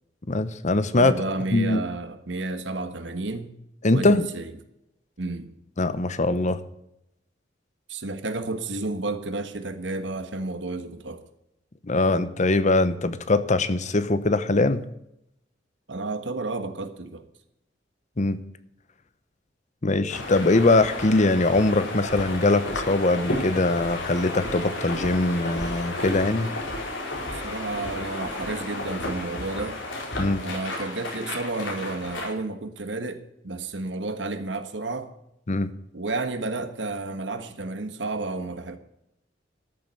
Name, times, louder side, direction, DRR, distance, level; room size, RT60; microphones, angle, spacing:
voice 1, 0.3-1.1 1.5-1.8 3.8-4.3 5.8-6.6 11.9-14.8 18.2-18.4 19.8-26.5 30.2-30.4 35.5-35.7, left 2 dB, 40° left, 0.9 m, -22 dB
voice 2, 0.9-3.5 3.9-4.5 5.2-5.5 7.9-11.2 15.9-17.2 27.3-29.8 30.4-35.1 35.9-38.8, right 2 dB, 75° right, 1.5 m, -31 dB
sound 1, 20.1-32.3, left 2 dB, 90° left, 4.5 m, -32 dB
13.5 x 7.4 x 8.2 m
head